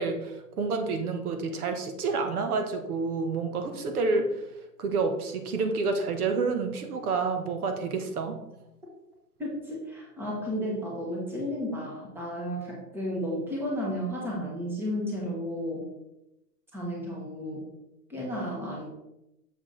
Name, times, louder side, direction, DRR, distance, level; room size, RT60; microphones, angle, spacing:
voice 1, 0.0-4.4 4.8-8.4, right 4 dB, 60° right, 7 dB, 1.0 m, -29 dB
voice 2, 9.4-15.8 16.7-17.7 18.1-18.8, equal, 5° right, -3 dB, 1.1 m, -33 dB
6.9 x 4.7 x 3.8 m, 0.90 s
hypercardioid pair, 145°, 49 cm